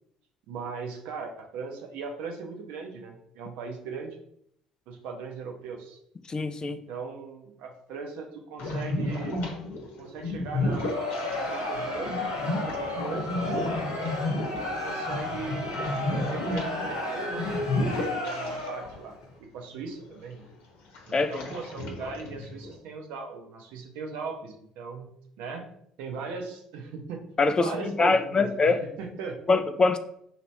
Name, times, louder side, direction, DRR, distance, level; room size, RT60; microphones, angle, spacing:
voice 1, 0.5-4.2 4.9-6.0 6.9-9.4 10.0-13.5 14.5-15.6 16.0-20.5 21.1-25.1 25.4-25.7 26.0-27.2 27.6-29.6, right 4 dB, 65° right, 2 dB, 0.7 m, -38 dB
voice 2, 6.3-6.8 21.1-21.4 27.4-28.8 29.5-30.0, left 3 dB, 30° left, 10 dB, 0.4 m, -23 dB
sound 1, 8.6-19.0 19.3-19.4 20.0-20.4 20.9-22.7, left 2 dB, 60° left, 1.0 m, -33 dB
Crowd, 10.5-19.0, left 1 dB, 85° left, 0.8 m, -33 dB
2.9 x 2.8 x 4.5 m, 0.70 s
figure-of-eight pair, 55°, 3 cm